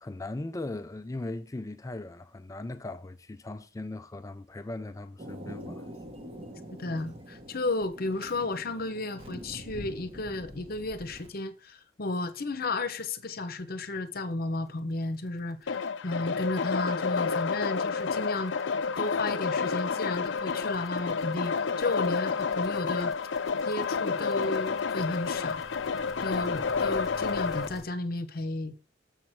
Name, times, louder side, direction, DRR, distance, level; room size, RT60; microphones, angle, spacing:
voice 1, 0.0-5.9, left 2 dB, 15° left, 0.3 m, -38 dB
Thunder, 5.2-11.3, equal, 30° right, 1.3 m, -44 dB
voice 2, 6.8-23.1 23.6-25.6 26.2-28.8, left 2 dB, 50° left, 0.9 m, -33 dB
sound 1, 12.4-12.5 12.9-13.0 13.2-27.8, equal, ahead, 1.1 m, -52 dB
sound 2, 15.7-27.7, left 5 dB, 70° left, 0.5 m, -30 dB
7.2 x 5.9 x 4.5 m
head